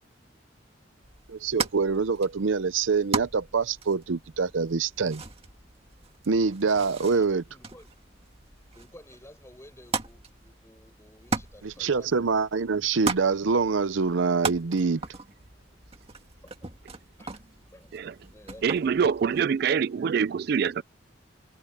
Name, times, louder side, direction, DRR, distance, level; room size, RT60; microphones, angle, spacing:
sound 1, 1.0-19.5, right 4 dB, 30° right, 2.0 m, -38 dB
voice 1, 1.3-5.2 6.3-7.4 11.6-15.0, right 4 dB, 90° right, 0.7 m, -25 dB
voice 2, 7.1-7.9 8.7-12.3 16.4-16.8 17.2-18.0 18.3-18.8, left 1 dB, 15° left, 6.9 m, -53 dB
voice 3, 18.6-20.8, right 6 dB, 55° right, 0.3 m, -25 dB
head